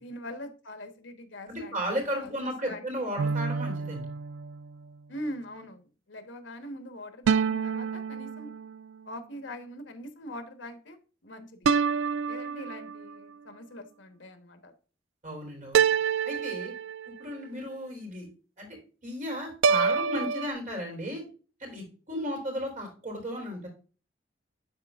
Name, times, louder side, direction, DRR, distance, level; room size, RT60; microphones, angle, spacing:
voice 1, 0.0-1.8 2.2-2.3 2.6-3.1 5.1-8.5 9.1-11.0 11.2-11.7 12.2-14.7, left 1 dB, 80° left, 8 dB, 1.2 m, -42 dB
voice 2, 1.5-4.1 15.2-15.8 16.2-16.7 17.1-18.3 18.6-18.7 19.0-21.2 21.6-23.7, equal, 45° right, 1 dB, 3.7 m, -34 dB
sound 1, 3.2-4.8 7.3-8.9 11.6-13.2 15.7-17.3 19.6-20.5, right 6 dB, 90° right, 0.3 m, -27 dB
11.0 x 4.3 x 2.4 m, 0.37 s
head